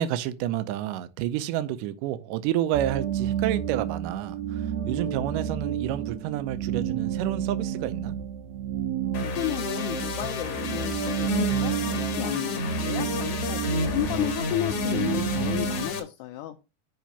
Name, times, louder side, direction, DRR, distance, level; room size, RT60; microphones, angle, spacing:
voice 1, 0.0-8.2, right 12 dB, 80° right, 2.2 m, -30 dB
sound 1, 2.7-15.9, right 9 dB, 65° right, 1.9 m, -30 dB
sound 2, 9.1-16.0, left 5 dB, 55° left, 1.9 m, -31 dB
voice 2, 9.2-16.6, left 13 dB, 80° left, 2.0 m, -33 dB
6.0 x 4.9 x 5.6 m
omnidirectional pair, 3.9 m